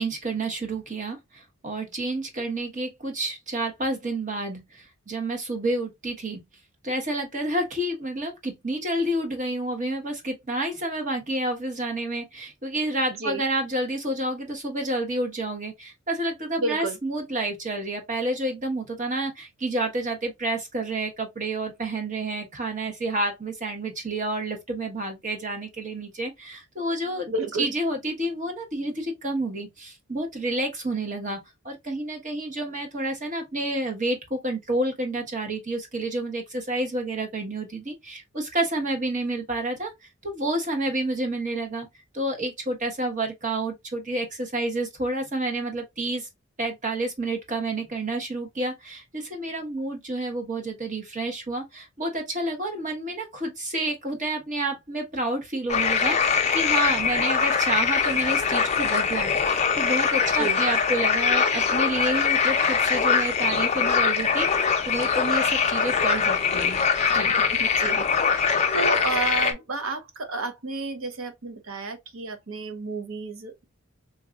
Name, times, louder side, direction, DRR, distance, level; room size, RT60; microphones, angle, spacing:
voice 1, 0.0-6.4 6.8-27.3 27.6-31.4 31.6-41.9 42.1-46.3 46.6-66.8 67.1-67.3, right 1 dB, 35° right, 1.1 m, -29 dB
voice 2, 16.6-17.0 27.3-27.7 60.3-60.6 67.5-73.6, right 3 dB, 65° right, 0.8 m, -31 dB
sound 1, 55.7-69.5, left 6 dB, 30° left, 0.5 m, -23 dB
3.8 x 2.9 x 2.3 m
head